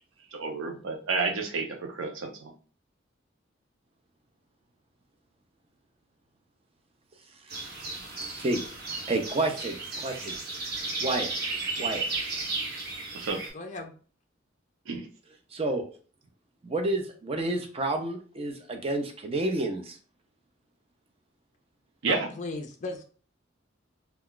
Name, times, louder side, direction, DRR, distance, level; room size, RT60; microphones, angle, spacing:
voice 1, 0.3-2.5 13.1-13.4 14.9-15.1 22.0-22.3, right 4 dB, 90° right, 3 dB, 0.6 m, -30 dB
sound 1, 7.5-13.5, right 3 dB, 50° right, 0.9 m, -34 dB
voice 2, 9.1-10.4 11.0-11.3 11.8-12.0 15.5-15.8 16.6-20.0, right 2 dB, 30° right, 5 dB, 0.4 m, -29 dB
voice 3, 13.5-13.9 22.1-23.0, left 2 dB, 40° left, 3 dB, 0.4 m, -36 dB
2.3 x 2.2 x 3.6 m, 0.41 s
head